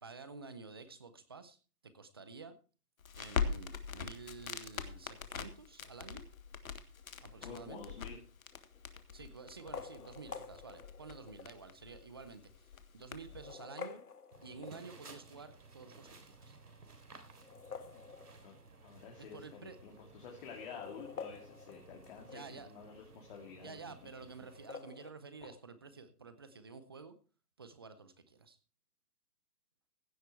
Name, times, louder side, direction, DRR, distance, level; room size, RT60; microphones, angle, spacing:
voice 1, 0.0-1.6 1.8-2.5 3.2-6.3 7.2-7.9 9.1-14.0 14.4-16.5 19.2-19.8 22.2-22.7 23.1-23.2 23.6-27.1 27.6-28.6, right 4 dB, 15° right, 12 dB, 0.5 m, -51 dB
Crackle, 3.0-13.5, left 6 dB, 65° left, 1.6 m, -43 dB
voice 2, 7.4-8.2 17.9-18.0 18.4-18.5 18.8-23.8 25.4-25.5, left 6 dB, 35° left, 0 dB, 2.6 m, -50 dB
sound 1, 7.9-8.3 9.5-11.6 12.2-12.3 13.2-15.2 17.3-18.8 19.1-19.2 19.4-19.5 20.3-22.6 24.5-25.1, left 5 dB, 85° left, 1.5 m, -49 dB
sound 2, 14.3-24.7, right 3 dB, 80° right, 3.5 m, -57 dB
16.0 x 7.9 x 4.5 m, 0.35 s
hypercardioid pair, 145°, 45 cm